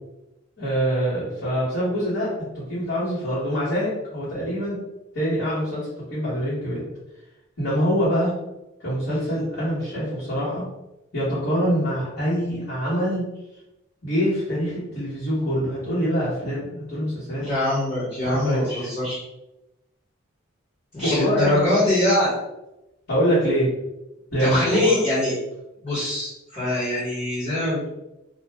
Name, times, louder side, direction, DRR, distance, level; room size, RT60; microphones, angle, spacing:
voice 1, 0.6-2.3 2.5-4.8 5.1-6.8 7.6-8.3 8.8-10.6 11.1-13.2 14.0-17.4 18.2-18.9 21.0-21.6 23.1-23.7 24.3-24.9, equal, 65° left, -13 dB, 1.3 m, -24 dB
voice 2, 17.3-19.2 20.9-22.3 24.4-25.3 25.8-27.9, left 1 dB, 30° left, -14 dB, 1.1 m, -23 dB
2.5 x 2.2 x 3.3 m, 0.94 s
head